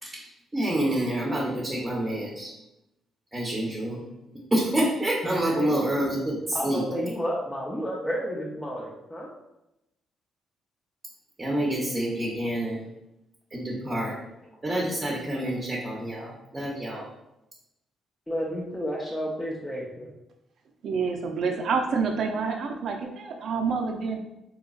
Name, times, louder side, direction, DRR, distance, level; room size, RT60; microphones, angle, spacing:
voice 1, 0.5-2.5 3.3-4.0 4.5-6.8 11.4-12.8 13.5-14.2 14.6-17.1, right 1 dB, 20° right, -4 dB, 0.8 m, -27 dB
voice 2, 5.2-5.7 6.5-9.3 18.3-20.1, equal, 10° left, -4 dB, 0.6 m, -31 dB
voice 3, 20.8-24.2, right 5 dB, 65° right, 4 dB, 0.5 m, -28 dB
3.8 x 2.9 x 2.4 m, 0.88 s
cardioid pair, 90°, 0 cm